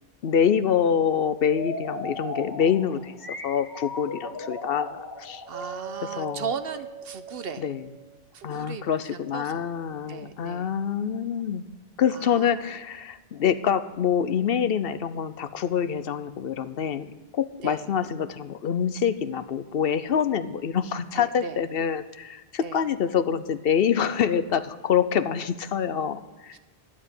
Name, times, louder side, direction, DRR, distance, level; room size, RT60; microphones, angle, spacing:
voice 1, 0.2-5.4 6.2-6.4 7.6-7.8 8.4-11.6 12.0-26.6, left 8 dB, 70° left, 12 dB, 0.8 m, -26 dB
sound 1, 1.5-8.2, left 1 dB, 20° left, 1.3 m, -37 dB
voice 2, 5.5-7.7 8.3-9.7 10.1-10.7 12.1-12.6 17.6-17.9 21.1-21.6 22.6-22.8 26.5-26.6, right 6 dB, 65° right, 11 dB, 1.0 m, -37 dB
12.5 x 7.4 x 9.7 m, 1.1 s
omnidirectional pair, 1.1 m